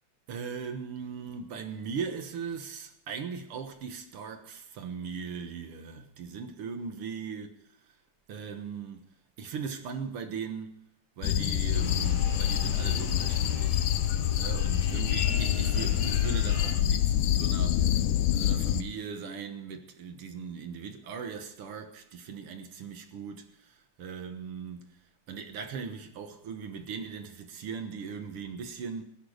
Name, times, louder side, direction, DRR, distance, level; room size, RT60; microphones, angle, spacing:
voice 1, 0.3-7.5 8.3-9.0 9.4-10.8 11.2-13.9 14.4-25.0 25.3-29.0, right 6 dB, 60° right, 1.6 m, -39 dB
sound 1, 11.2-18.8, left 11 dB, 80° left, 2.1 m, -26 dB
sound 2, 11.7-16.7, left 2 dB, 35° left, 8.1 m, -38 dB
17.5 x 10.5 x 5.1 m
omnidirectional pair, 3.9 m